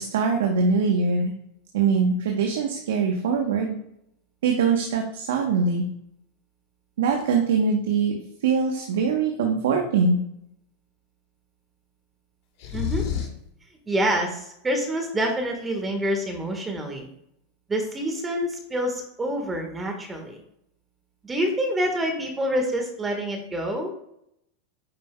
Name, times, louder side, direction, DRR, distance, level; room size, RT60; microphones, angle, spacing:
voice 1, 0.0-1.3 1.7-3.8 4.4-5.8 7.0-8.1 8.4-10.2, right 5 dB, 75° right, 2 dB, 1.0 m, -22 dB
sound 1, 12.6-13.5, left 7 dB, 60° left, 2.4 m, -28 dB
voice 2, 12.7-13.0 13.9-17.1 17.7-20.4 21.2-23.9, equal, 15° right, 3 dB, 1.5 m, -27 dB
9.6 x 5.3 x 2.3 m, 0.76 s
hypercardioid pair, 95°, 0 cm